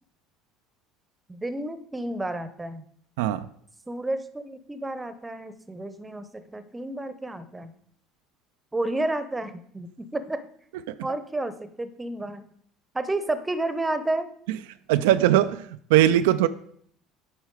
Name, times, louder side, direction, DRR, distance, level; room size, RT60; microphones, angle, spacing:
voice 1, 1.3-2.8 3.9-7.7 8.7-10.4 11.0-12.4 12.9-14.3, right 2 dB, 15° right, 12 dB, 0.8 m, -31 dB
voice 2, 14.9-15.6 15.9-16.5, right 12 dB, 80° right, 11 dB, 0.4 m, -19 dB
8.3 x 5.5 x 4.7 m, 0.64 s
hypercardioid pair, 80°, 0 cm